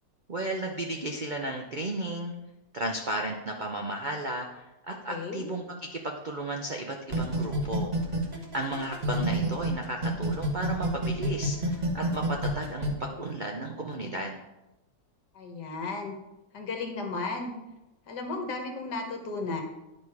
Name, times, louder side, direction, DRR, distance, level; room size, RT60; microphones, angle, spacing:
voice 1, 0.3-2.3 2.7-7.9 8.5-14.4, right 1 dB, 80° right, 1 dB, 0.4 m, -34 dB
voice 2, 4.9-5.4 15.4-16.2 16.5-17.6 18.1-19.6, left 3 dB, 65° left, 3 dB, 1.8 m, -34 dB
sound 1, 7.1-9.7 10.0-12.9, right 1 dB, 25° right, 1.3 m, -28 dB
10.5 x 5.2 x 4.7 m, 0.97 s
omnidirectional pair, 2.0 m